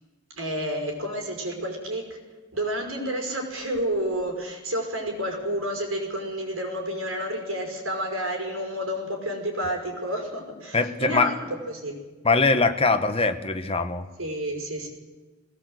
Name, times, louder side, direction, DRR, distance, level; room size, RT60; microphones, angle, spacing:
voice 1, 0.4-2.2 2.5-12.0 12.8-12.9 14.2-14.9, equal, 85° right, 2 dB, 5.6 m, -30 dB
voice 2, 10.7-11.3 12.2-14.1, left 3 dB, 30° left, 8 dB, 1.2 m, -22 dB
20.0 x 17.5 x 8.1 m, 1.3 s
head